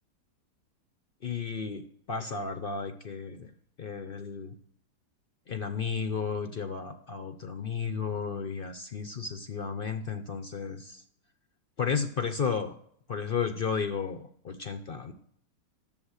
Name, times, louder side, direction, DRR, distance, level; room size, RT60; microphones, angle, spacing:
voice 1, 1.2-3.5 3.8-4.5 5.5-11.0 11.8-12.7 13.1-15.1, left 6 dB, 65° left, 8 dB, 0.5 m, -33 dB
10.5 x 7.3 x 6.3 m, 0.67 s
omnidirectional pair, 1.9 m